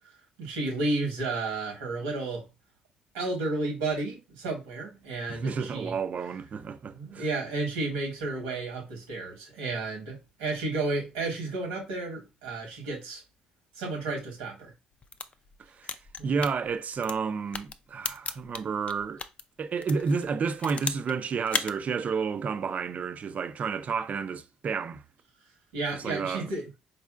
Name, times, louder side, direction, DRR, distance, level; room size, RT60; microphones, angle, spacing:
voice 1, 0.4-2.4 3.1-6.0 6.9-13.2 13.8-14.7 16.3-16.4 25.7-26.7, right 2 dB, 90° right, 1.3 m, -32 dB
voice 2, 5.3-7.3 15.7-19.2 19.6-25.0 25.9-26.5, right 5 dB, 45° right, 0.5 m, -31 dB
sound 1, 14.9-19.4 19.8-21.1 21.4-21.7, left 5 dB, 35° left, 0.4 m, -35 dB
4.1 x 2.6 x 2.4 m
hypercardioid pair, 60°, 3 cm